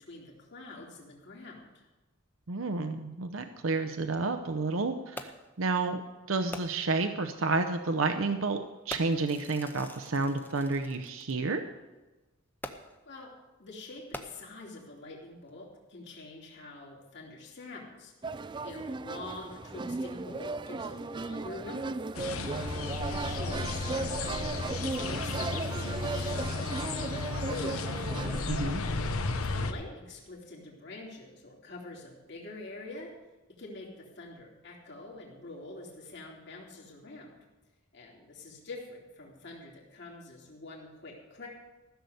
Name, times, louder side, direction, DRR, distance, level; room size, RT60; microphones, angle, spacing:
voice 1, 0.1-1.9 13.0-13.3 13.6-22.0 22.4-22.8 23.2-24.7 25.0-27.8 29.4-33.1 33.6-37.4 37.9-41.5, left 2 dB, 55° left, -2 dB, 3.0 m, -46 dB
voice 2, 2.5-5.3 5.6-6.0 6.3-8.6 8.9-11.6 28.5-28.8, right 3 dB, 70° right, 7 dB, 0.7 m, -30 dB
Fireworks, 5.2-5.6 6.5-7.0 7.9-8.1 8.9-11.3 12.6-13.1 14.0-14.8 15.5-15.6, left 1 dB, 10° left, 0.8 m, -44 dB
sound 1, 18.2-28.4, right 3 dB, 20° right, 0.3 m, -36 dB
sound 2, 22.1-29.7, left 3 dB, 90° left, 1.0 m, -33 dB
15.0 x 6.9 x 7.8 m, 1.1 s
head